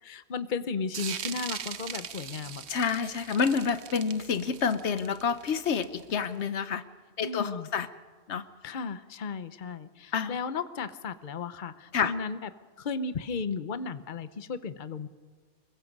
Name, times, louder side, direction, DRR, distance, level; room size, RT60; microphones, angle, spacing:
voice 1, 0.0-2.6 7.2-7.7 8.6-12.5 12.8-15.1, left 5 dB, 50° left, 12 dB, 1.0 m, -35 dB
sound 1, 0.9-6.3, right 8 dB, 75° right, 1.1 m, -40 dB
voice 2, 2.7-6.8 7.2-7.9 8.3-8.5 10.1-10.4 11.9-12.1, left 6 dB, 85° left, 12 dB, 1.2 m, -28 dB
26.0 x 22.0 x 5.4 m, 1.5 s
omnidirectional pair, 1.1 m